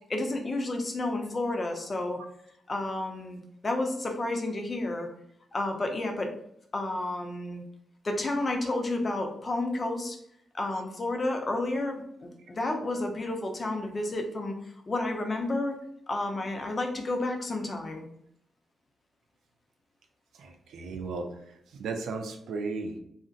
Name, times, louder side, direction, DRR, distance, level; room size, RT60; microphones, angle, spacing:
voice 1, 0.1-2.2 2.7-5.1 5.5-6.3 6.7-7.6 8.0-10.2 10.5-14.5 14.9-15.8 16.1-18.1, left 2 dB, 35° left, 3 dB, 0.6 m, -31 dB
voice 2, 20.4-21.3 21.7-23.0, right 4 dB, 85° right, 4 dB, 0.4 m, -35 dB
2.5 x 2.1 x 3.8 m, 0.72 s
cardioid pair, 80°, 0 cm